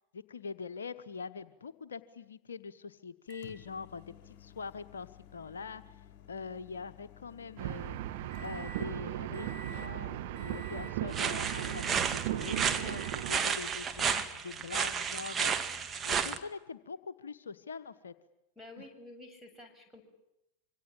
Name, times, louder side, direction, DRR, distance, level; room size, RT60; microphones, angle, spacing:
voice 1, 0.1-8.0 8.4-15.5 16.0-18.1 18.8-18.9, left 5 dB, 70° left, 10 dB, 1.2 m, -43 dB
Microwave oven, 3.3-8.9 9.3-9.9 10.3-11.0 11.4-12.0 12.4-13.2 14.2-14.3 16.3-16.4, left 2 dB, 40° left, 3.5 m, -52 dB
sound 1, 7.6-13.3, right 14 dB, 50° right, 1.6 m, -37 dB
sound 2, 11.1-16.4, right 6 dB, 20° right, 2.0 m, -32 dB
voice 2, 18.6-20.0, left 1 dB, ahead, 1 dB, 7.3 m, -50 dB
26.5 x 25.0 x 8.7 m, 0.89 s
figure-of-eight pair, 90°, 0 cm